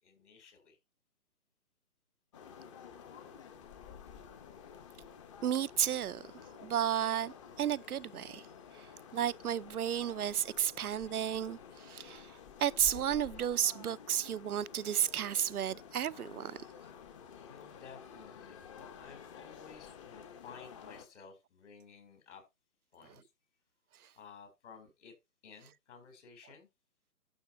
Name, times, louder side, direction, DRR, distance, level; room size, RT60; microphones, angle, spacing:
voice 1, 0.0-0.8 11.8-12.3 17.4-22.4 22.9-23.3 24.1-25.1 25.4-26.7, left 6 dB, 50° left, 4.4 m, -55 dB
sound 1, 2.3-21.1, left 7 dB, 20° left, 1.1 m, -51 dB
voice 2, 5.4-6.2 6.6-8.4 8.7-8.9 9.1-12.3 12.6-16.6, right 10 dB, 70° right, 0.7 m, -33 dB
11.5 x 6.6 x 4.3 m
hypercardioid pair, 150°, 46 cm